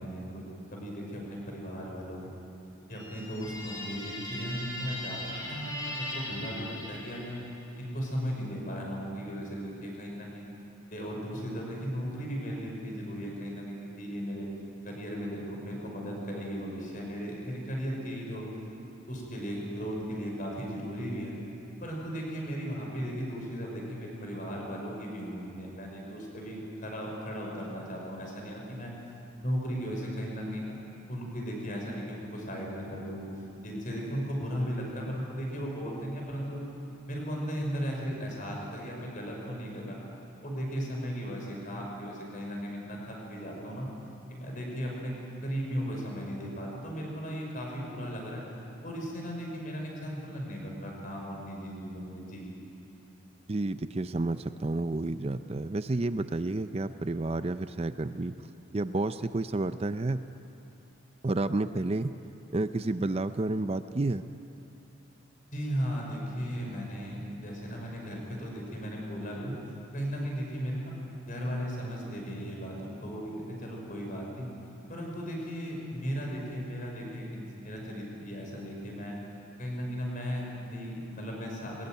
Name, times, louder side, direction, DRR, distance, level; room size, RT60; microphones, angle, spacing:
voice 1, 0.0-2.4 2.9-7.4 7.8-10.5 10.9-14.5 14.8-18.4 19.1-21.4 21.8-28.9 29.4-30.7 31.1-33.3 33.6-36.7 37.1-40.0 40.4-43.9 44.3-48.4 48.8-52.5 65.5-69.5 69.9-70.9 71.2-74.5 74.9-79.2 79.6-81.9, equal, 40° left, -1 dB, 5.8 m, -36 dB
sound 1, 2.9-7.6, left 1 dB, 20° left, 4.9 m, -39 dB
voice 2, 53.5-58.3 58.7-60.2 61.2-62.1 62.5-64.2, right 2 dB, 30° right, 11 dB, 0.5 m, -30 dB
23.0 x 20.5 x 9.3 m, 2.8 s
head